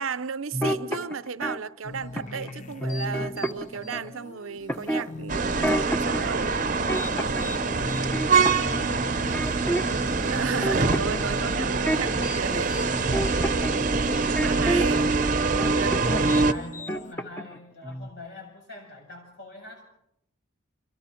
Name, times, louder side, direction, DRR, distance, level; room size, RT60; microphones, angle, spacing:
voice 1, 0.0-6.5 10.3-12.9 14.2-15.0 15.6-16.0, right 6 dB, 85° right, 0.7 m, -34 dB
sound 1, 0.5-1.6 2.2-2.5 2.8-4.1 4.7-6.2 6.6-7.5 7.8-10.0 10.3-15.2 15.6-16.3 16.6-17.6 17.8-18.1, right 1 dB, 10° left, 1.0 m, -30 dB
sound 2, 1.8-17.1, left 2 dB, 35° left, 0.8 m, -42 dB
sound 3, 5.3-16.5, right 4 dB, 40° right, 0.8 m, -24 dB
voice 2, 7.5-10.2 14.9-15.4 16.4-19.8, left 2 dB, 55° left, 7.4 m, -45 dB
28.5 x 23.0 x 4.5 m
head